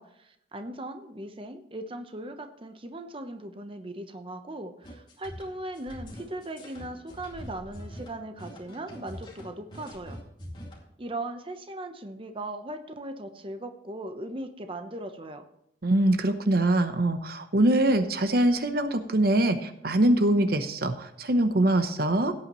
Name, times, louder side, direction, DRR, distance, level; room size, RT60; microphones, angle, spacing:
voice 1, 0.0-10.2 11.0-15.4, right 1 dB, 30° right, 6 dB, 0.9 m, -38 dB
sound 1, 4.8-10.8, equal, 25° left, 2.4 m, -43 dB
voice 2, 15.8-22.3, right 1 dB, 55° right, 9 dB, 0.8 m, -23 dB
17.0 x 8.7 x 3.1 m, 0.78 s
head